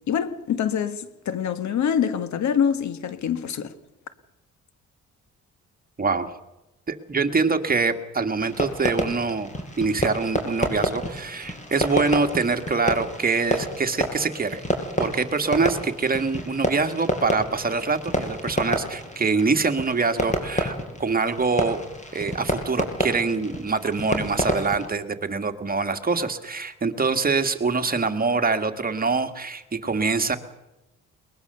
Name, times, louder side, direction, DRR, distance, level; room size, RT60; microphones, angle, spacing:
voice 1, 0.1-3.7, left 8 dB, 70° left, 1.7 m, -25 dB
voice 2, 6.0-6.3 6.9-9.5 9.8-14.6 15.0-21.8 22.1-30.4, right 4 dB, 30° right, 2.0 m, -24 dB
Fireworks, 8.4-24.9, left 1 dB, 25° left, 5.1 m, -29 dB
22.0 x 20.5 x 6.9 m
cardioid pair, 90°, 30 cm